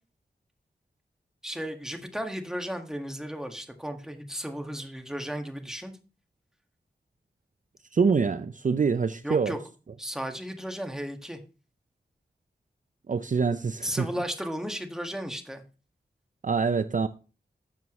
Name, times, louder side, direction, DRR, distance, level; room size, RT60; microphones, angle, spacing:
voice 1, 1.4-6.0 9.2-9.6 10.0-11.4 13.8-15.6, equal, 5° right, 1.6 m, -34 dB
voice 2, 7.9-9.5 13.1-14.1 16.4-17.1, right 5 dB, 45° right, 0.5 m, -25 dB
12.0 x 7.0 x 3.1 m
wide cardioid pair, 60°, 18 cm